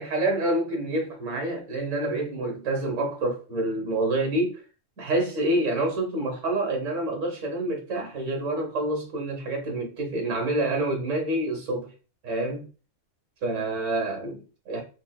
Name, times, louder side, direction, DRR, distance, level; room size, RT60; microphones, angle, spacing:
voice 1, 0.0-4.6 5.0-11.9 12.2-12.7 13.4-14.8, right 2 dB, 80° right, 1.4 m, -27 dB
4.6 x 2.0 x 2.2 m
omnidirectional pair, 1.3 m